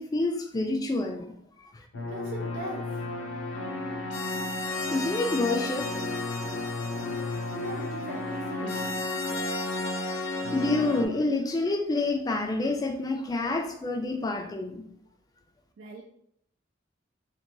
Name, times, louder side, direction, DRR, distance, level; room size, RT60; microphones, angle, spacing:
voice 1, 0.0-1.8 4.9-5.9 10.5-14.9, left 2 dB, 20° left, 4 dB, 0.3 m, -28 dB
sound 1, 1.9-11.1, left 2 dB, 80° left, 0.5 m, -32 dB
voice 2, 1.9-3.0 7.5-9.1 15.8-16.0, right 2 dB, 90° right, -1 dB, 0.4 m, -40 dB
2.9 x 2.2 x 2.6 m, 0.71 s
head